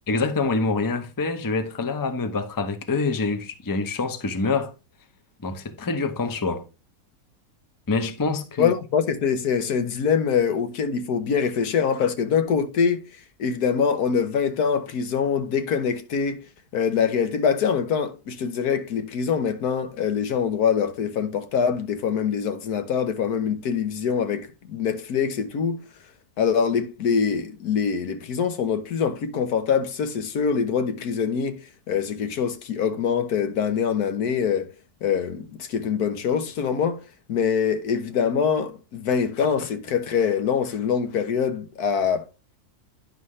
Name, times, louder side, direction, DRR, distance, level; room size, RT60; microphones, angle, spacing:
voice 1, 0.1-4.7 5.4-6.7 7.9-8.7, left 3 dB, 20° left, 0.6 m, -26 dB
voice 2, 8.6-13.0 13.4-16.5 16.7-25.8 26.4-31.6 31.9-34.7 35.0-37.0 37.3-42.3, left 6 dB, 80° left, 1.5 m, -24 dB
10.0 x 5.6 x 3.1 m
omnidirectional pair, 1.6 m